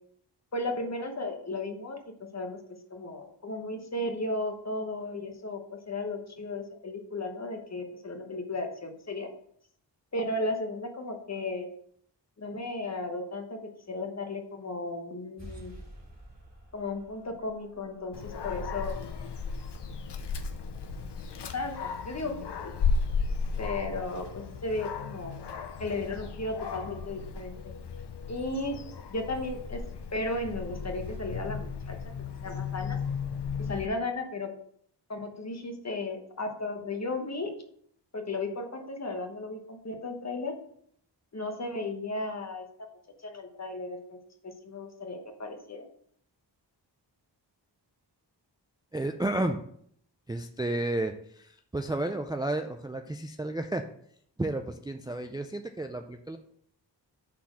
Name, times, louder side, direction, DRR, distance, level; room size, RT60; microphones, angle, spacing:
voice 1, 0.5-2.0 2.3-2.6 2.9-9.3 10.1-11.7 12.4-13.6 13.9-15.8 16.7-18.9 21.5-22.3 22.6-22.7 23.6-25.4 25.8-27.6 28.3-28.8 29.1-29.8 30.1-32.0 32.4-33.0 33.7-34.5 35.1-37.5 38.1-40.5 41.3-42.6 43.2-44.2 44.4-45.8, left 2 dB, 40° left, 4 dB, 1.1 m, -35 dB
sound 1, 15.4-22.5, equal, 40° right, 2.4 m, -53 dB
Dog, 18.1-33.9, left 5 dB, 70° left, 0.8 m, -35 dB
voice 2, 48.9-49.6 50.3-51.1 51.7-53.8 54.4-56.4, right 1 dB, 10° right, 6 dB, 0.3 m, -31 dB
5.8 x 4.3 x 6.2 m, 0.66 s
wide cardioid pair, 120°, 43 cm